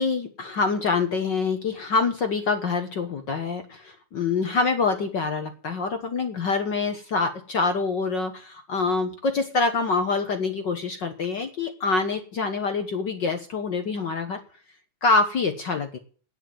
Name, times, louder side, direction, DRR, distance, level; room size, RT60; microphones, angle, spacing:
voice 1, 0.0-14.4 15.0-16.0, left 4 dB, 60° left, 7 dB, 1.1 m, -25 dB
9.4 x 9.1 x 7.5 m, 0.41 s
omnidirectional pair, 3.6 m